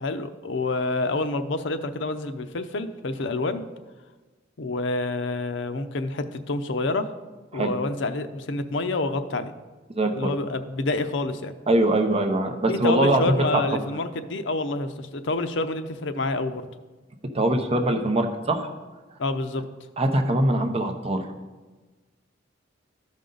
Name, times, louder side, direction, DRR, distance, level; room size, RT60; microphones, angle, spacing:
voice 1, 0.0-3.6 4.6-7.1 7.5-9.5 10.0-11.5 12.7-16.7 19.2-19.6, left 2 dB, 70° left, 9 dB, 0.6 m, -28 dB
voice 2, 10.0-10.3 11.7-13.6 17.3-18.7 20.0-21.2, right 1 dB, 30° right, 4 dB, 0.8 m, -22 dB
13.0 x 5.4 x 3.9 m, 1.3 s
head